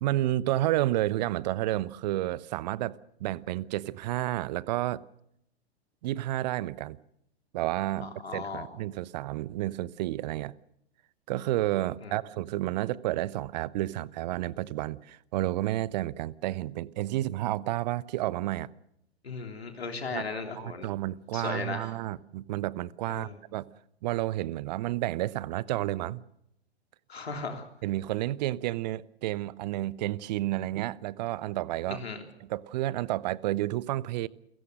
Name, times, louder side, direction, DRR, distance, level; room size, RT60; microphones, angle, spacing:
voice 1, 0.0-5.0 6.0-7.0 7.5-10.5 11.3-18.7 20.1-20.3 20.6-23.7 24.0-26.2 27.8-32.0 32.4-34.3, right 15 dB, 40° right, 0.9 m, -31 dB
voice 2, 8.0-8.7 12.0-12.1 19.2-20.9 21.3-21.9 23.1-23.3 27.1-27.6 31.9-32.2, left 4 dB, 70° left, 3.3 m, -36 dB
30.0 x 17.0 x 6.5 m
figure-of-eight pair, 105°, 32 cm